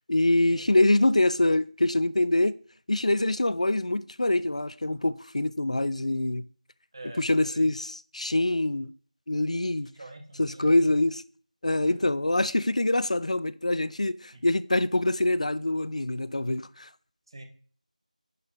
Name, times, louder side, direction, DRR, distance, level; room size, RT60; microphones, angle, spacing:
voice 1, 0.1-2.5 2.9-6.5 7.2-8.9 9.3-9.9 10.4-11.2 11.6-16.9, left 2 dB, 55° left, 0.5 m, -25 dB
voice 2, 6.9-7.6 9.9-10.7 11.8-11.9 14.3-14.4 17.3-17.4, right 2 dB, 35° right, 1.3 m, -45 dB
10.5 x 5.7 x 3.9 m
figure-of-eight pair, 170°, 4 cm